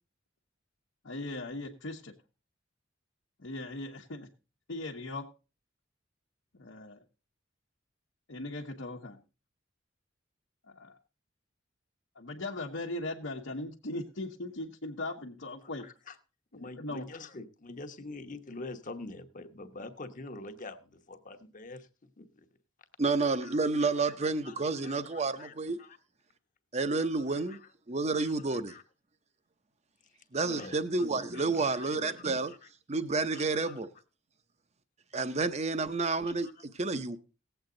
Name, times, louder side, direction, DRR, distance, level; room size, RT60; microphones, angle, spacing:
voice 1, 1.0-2.1 3.4-4.3 4.7-5.3 6.5-7.0 8.3-9.2 10.7-11.0 12.1-15.9 16.5-17.1, left 2 dB, 85° left, 1.1 m, -39 dB
voice 2, 15.8-16.1 16.5-21.9 22.2-22.5 23.4-23.9 24.2-26.0 27.0-27.6 28.1-28.8 30.4-30.8 31.2-32.6 33.1-33.7 36.0-36.1 36.4-36.5, left 3 dB, 45° left, 1.1 m, -46 dB
voice 3, 23.0-25.8 26.7-27.6 27.9-28.7 30.3-32.5 32.9-33.9 35.1-37.2, right 3 dB, 35° right, 0.8 m, -30 dB
18.0 x 8.1 x 3.8 m
head